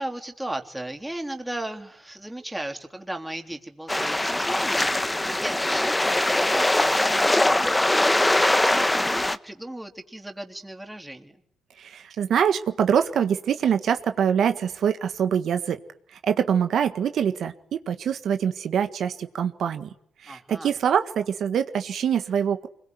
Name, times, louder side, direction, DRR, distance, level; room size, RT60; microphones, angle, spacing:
voice 1, 0.0-7.7 8.3-11.4 20.3-20.7, right 1 dB, 5° right, 4 dB, 3.5 m, -36 dB
sound 1, 3.9-9.4, left 1 dB, 10° left, 1.3 m, -22 dB
voice 2, 11.8-15.8 16.1-19.9 20.2-22.7, right 8 dB, 65° right, 8 dB, 1.7 m, -24 dB
25.5 x 22.0 x 9.6 m, 0.70 s
cardioid pair, 90°, 0 cm